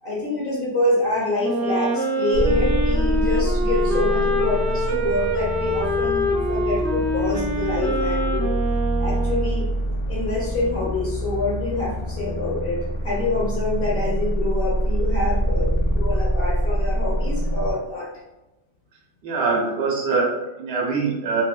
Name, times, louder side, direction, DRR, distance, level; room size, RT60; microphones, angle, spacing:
voice 1, 0.0-8.5 9.0-9.7 10.1-18.1, left 2 dB, 55° left, -4 dB, 0.8 m, -26 dB
Wind instrument woodwind instrument, 1.4-9.8, equal, 20° right, 0.4 m, -25 dB
sound 1, 2.3-17.7, equal, 75° left, 1.1 m, -25 dB
voice 2, 19.2-21.4, right 4 dB, 60° right, -2 dB, 1.1 m, -23 dB
3.6 x 2.6 x 2.3 m, 1.0 s
omnidirectional pair, 1.3 m